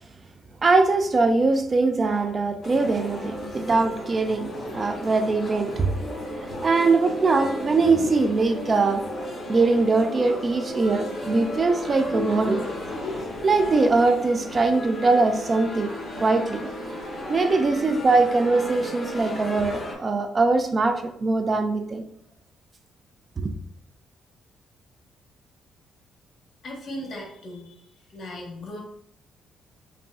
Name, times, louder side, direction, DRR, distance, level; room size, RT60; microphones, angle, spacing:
voice 1, 0.6-5.9 6.6-9.1 9.5-12.7 13.4-16.8 17.0-22.0 23.4-23.5, right 3 dB, 35° right, 7 dB, 0.4 m, -22 dB
sound 1, 2.6-19.9, left 1 dB, 35° left, 1.3 m, -34 dB
voice 2, 26.6-27.8 28.1-28.8, left 1 dB, 55° left, 0 dB, 1.3 m, -37 dB
5.4 x 2.6 x 2.4 m, 0.72 s
cardioid pair, 90°, 0 cm